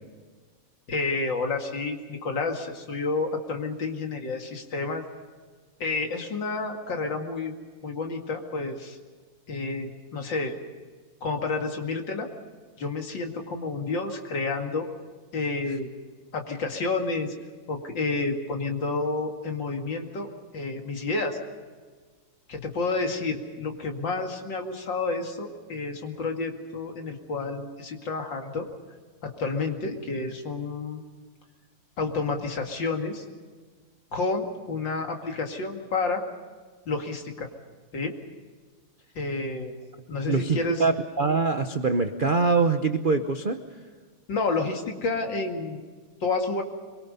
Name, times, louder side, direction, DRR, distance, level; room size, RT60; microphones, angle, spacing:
voice 1, 0.9-5.0 5.8-7.6 7.8-9.0 9.5-10.5 11.2-12.3 12.8-14.9 15.3-15.9 16.3-17.3 17.7-20.3 20.5-21.4 22.5-28.7 29.2-31.0 32.0-33.2 34.1-36.2 36.9-37.5 37.9-38.1 39.2-39.7 40.1-40.8 44.3-45.8 46.2-46.6, left 3 dB, 60° left, 3 dB, 2.8 m, -30 dB
voice 2, 40.3-43.6, right 4 dB, 60° right, 7 dB, 0.5 m, -24 dB
24.0 x 23.0 x 5.5 m, 1.5 s
omnidirectional pair, 2.3 m